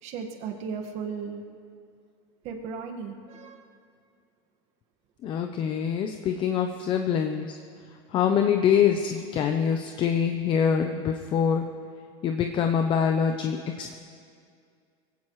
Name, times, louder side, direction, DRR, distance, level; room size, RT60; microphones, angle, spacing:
voice 1, 0.0-1.4 2.4-3.7, right 6 dB, 50° right, 2 dB, 1.7 m, -36 dB
voice 2, 5.2-7.5 8.1-11.7 12.2-13.9, left 7 dB, 35° left, 5 dB, 0.7 m, -25 dB
22.0 x 16.5 x 3.2 m, 2.3 s
supercardioid pair, 135°, 14 cm